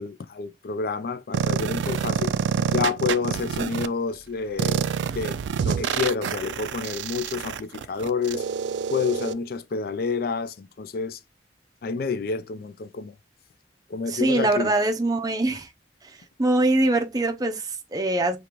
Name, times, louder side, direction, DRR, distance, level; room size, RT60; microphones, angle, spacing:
voice 1, 0.0-2.3 2.7-4.8 5.1-8.4 8.9-11.2 11.8-13.1 13.9-14.7, left 5 dB, 55° left, 0.4 m, -29 dB
sound 1, 1.3-3.9 4.6-9.3, right 7 dB, 85° right, 0.3 m, -27 dB
voice 2, 14.1-15.7 16.0-18.4, right 2 dB, 20° right, 0.5 m, -23 dB
5.0 x 2.5 x 2.9 m
head